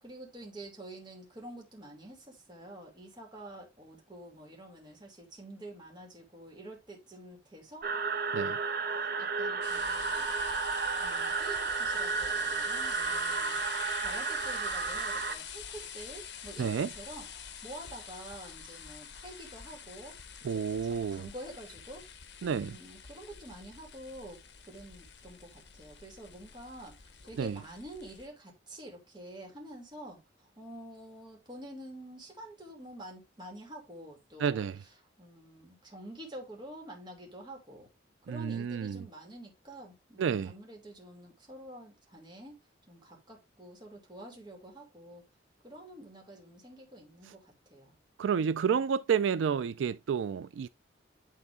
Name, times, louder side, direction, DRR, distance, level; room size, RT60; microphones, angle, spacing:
voice 1, 0.0-7.9 9.0-10.3 11.0-17.3 17.6-20.2 20.5-22.1 22.5-24.4 24.7-34.6 35.2-37.9 38.3-42.6 42.9-45.2 45.6-47.9, right 1 dB, 25° right, 2.7 m, -48 dB
sound 1, 7.8-15.3, right 5 dB, 50° right, 0.8 m, -32 dB
sound 2, 9.6-28.3, left 7 dB, 70° left, 1.0 m, -46 dB
voice 2, 16.6-16.9 20.4-21.2 22.4-22.8 27.4-27.6 34.4-34.8 38.3-39.0 40.2-40.5 48.2-50.7, right 7 dB, 85° right, 0.3 m, -30 dB
9.5 x 3.8 x 3.6 m
head